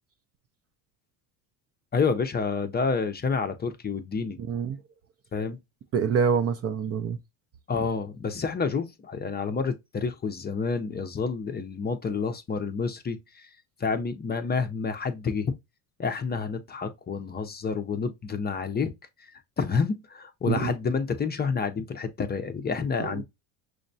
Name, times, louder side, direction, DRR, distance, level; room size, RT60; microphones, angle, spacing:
voice 1, 1.9-4.4 5.3-5.6 7.7-13.5 13.8-15.5 16.0-18.9 19.6-23.2, left 5 dB, 20° left, 0.5 m, -29 dB
voice 2, 4.4-4.8 5.9-7.2 20.5-20.7 23.0-23.2, right 6 dB, 35° right, 0.5 m, -26 dB
6.2 x 2.1 x 2.6 m
supercardioid pair, 90°, 45 cm